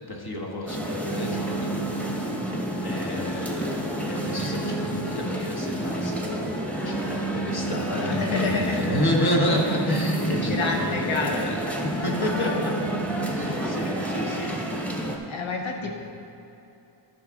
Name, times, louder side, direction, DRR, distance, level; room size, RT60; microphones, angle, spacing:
voice 1, 0.1-1.7 2.8-12.8 13.3-14.9 15.8-15.9, left 1 dB, 50° left, -1 dB, 1.4 m, -30 dB
sound 1, 0.7-15.2, right 1 dB, 5° left, 1.0 m, -29 dB
voice 2, 1.7-2.1 8.0-8.8 10.3-11.4 14.3-14.7 15.3-15.9, left 3 dB, 75° left, 1 dB, 1.0 m, -29 dB
13.0 x 5.7 x 3.6 m, 2.8 s
wide cardioid pair, 80°, 48 cm